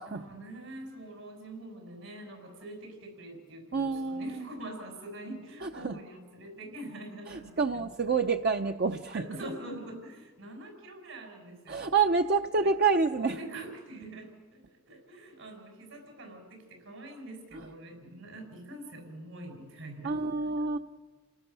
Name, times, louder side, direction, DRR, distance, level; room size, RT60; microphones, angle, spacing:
voice 1, 0.1-8.2 9.1-11.9 12.6-12.7 13.2-20.5, right 1 dB, 80° right, 3 dB, 5.7 m, -45 dB
voice 2, 3.7-4.5 5.6-6.0 7.3-9.2 11.7-13.4 20.0-20.8, right 4 dB, 50° right, 5 dB, 0.6 m, -28 dB
29.5 x 18.0 x 6.8 m, 1.4 s
head